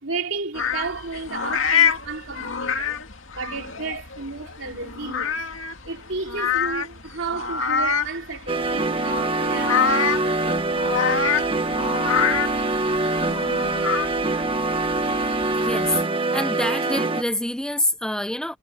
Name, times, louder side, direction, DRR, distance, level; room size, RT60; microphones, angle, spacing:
voice 1, 0.0-3.0 3.3-10.6, right 4 dB, 70° right, 3.4 m, -33 dB
sound 1, 0.5-16.0, left 6 dB, 80° left, 2.2 m, -26 dB
sound 2, 8.5-17.2, right 2 dB, 25° right, 1.4 m, -24 dB
voice 2, 15.6-16.0 16.3-18.6, left 1 dB, 5° left, 0.9 m, -26 dB
head